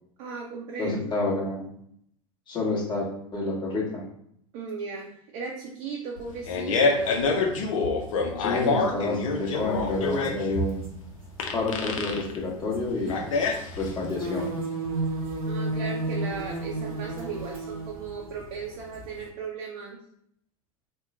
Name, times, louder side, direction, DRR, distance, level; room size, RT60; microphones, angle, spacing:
voice 1, 0.2-1.0 4.5-7.2 15.5-20.0, right 5 dB, 50° right, -1 dB, 0.6 m, -37 dB
voice 2, 0.8-1.7 2.5-4.0 8.4-11.0 11.5-13.2 13.8-14.5, left 2 dB, 25° left, -4 dB, 1.3 m, -29 dB
Fart, 6.2-14.1, left 3 dB, 70° left, 0.6 m, -27 dB
sound 1, 10.2-10.3 10.7-10.9 11.2-11.4 12.7-13.2 13.5-13.6 13.8-19.3, right 2 dB, 85° right, 0.9 m, -32 dB
2.9 x 2.1 x 3.5 m, 0.69 s
figure-of-eight pair, 85°, 18 cm